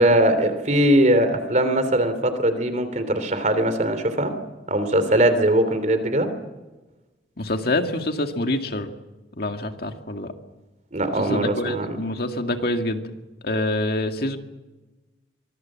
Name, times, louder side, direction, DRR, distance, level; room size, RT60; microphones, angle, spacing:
voice 1, 0.0-4.3 4.7-6.3 10.9-12.0, right 1 dB, 45° right, 10 dB, 3.2 m, -20 dB
voice 2, 7.4-8.9 9.4-10.3 11.2-13.0 13.4-14.4, left 1 dB, 60° left, 5 dB, 2.1 m, -26 dB
24.5 x 21.5 x 7.5 m, 1.1 s
head